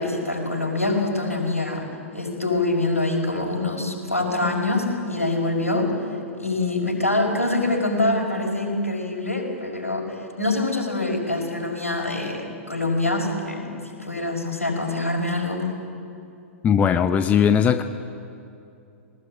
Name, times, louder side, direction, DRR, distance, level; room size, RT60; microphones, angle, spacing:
voice 1, 0.0-1.9 2.1-5.9 6.4-10.1 10.4-13.7 14.0-15.7, left 2 dB, 80° left, 0 dB, 5.5 m, -25 dB
voice 2, 16.6-17.8, left 8 dB, 20° left, 10 dB, 0.7 m, -18 dB
20.5 x 19.5 x 8.9 m, 2.6 s
figure-of-eight pair, 105°, 8 cm